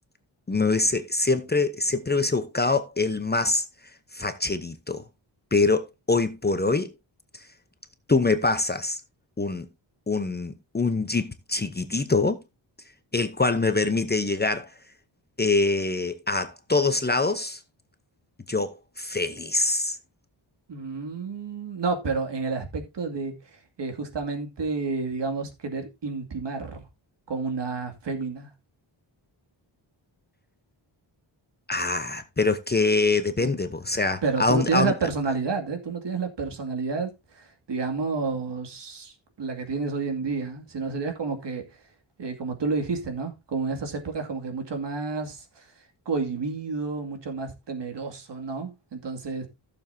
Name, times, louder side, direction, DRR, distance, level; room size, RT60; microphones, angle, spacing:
voice 1, 0.5-3.7 4.1-5.0 5.5-6.9 8.1-9.0 9.4-9.7 10.1-12.4 13.1-14.7 15.4-17.6 18.5-20.0 31.7-34.9, left 3 dB, 20° left, 0.8 m, -24 dB
voice 2, 20.7-23.3 23.8-26.8 27.3-28.5 33.4-33.5 34.2-39.1 39.4-41.6 42.2-45.7 46.1-49.5, right 4 dB, 60° right, 2.4 m, -30 dB
15.5 x 7.0 x 2.7 m
wide cardioid pair, 150°, 47 cm